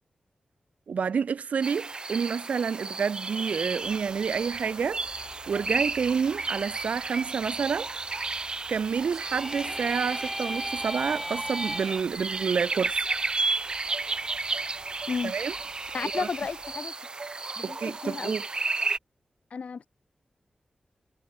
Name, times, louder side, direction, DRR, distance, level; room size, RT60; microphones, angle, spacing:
voice 1, 0.9-5.0 5.5-7.9 8.7-13.0 15.2-15.5 15.8-16.3 17.6-18.4, right 6 dB, 75° right, 0.4 m, -29 dB
sound 1, 1.6-19.0, right 3 dB, 35° right, 2.2 m, -33 dB
sound 2, 3.8-16.8, left 6 dB, 85° left, 7.8 m, -56 dB
sound 3, 9.1-12.0, right 1 dB, 5° right, 1.7 m, -35 dB
voice 2, 15.9-16.9 17.6-18.3 19.5-19.9, left 5 dB, 65° left, 4.6 m, -33 dB
wide cardioid pair, 140°, 2 cm